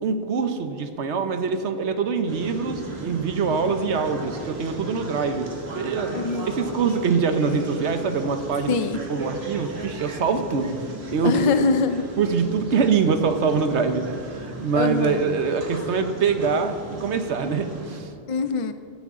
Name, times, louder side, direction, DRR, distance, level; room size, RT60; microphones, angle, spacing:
voice 1, 0.0-5.5 5.7-6.2 6.5-8.8 9.1-11.5 12.2-18.1, right 5 dB, 85° right, 8 dB, 1.2 m, -24 dB
sound 1, 2.3-18.0, right 1 dB, 70° right, 2.0 m, -36 dB
voice 2, 6.1-6.5 8.7-9.0 11.2-12.1 14.7-15.3 18.3-18.7, left 4 dB, 50° left, 10 dB, 0.4 m, -23 dB
15.0 x 11.0 x 3.7 m, 2.4 s
omnidirectional pair, 1.1 m